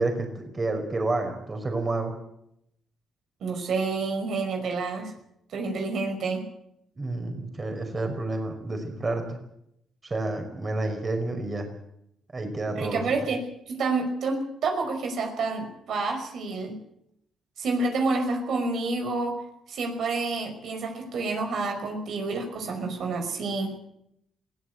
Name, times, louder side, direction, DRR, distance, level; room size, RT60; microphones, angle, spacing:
voice 1, 0.0-2.1 7.0-9.4 10.0-11.7 12.3-13.0, right 2 dB, 30° right, 4 dB, 5.3 m, -29 dB
voice 2, 3.4-5.1 5.5-6.5 12.7-13.4 13.7-16.8 17.6-19.4 19.7-23.7, right 3 dB, 70° right, 4 dB, 5.5 m, -29 dB
21.5 x 16.5 x 8.1 m, 0.76 s
cardioid pair, 90°, 0 cm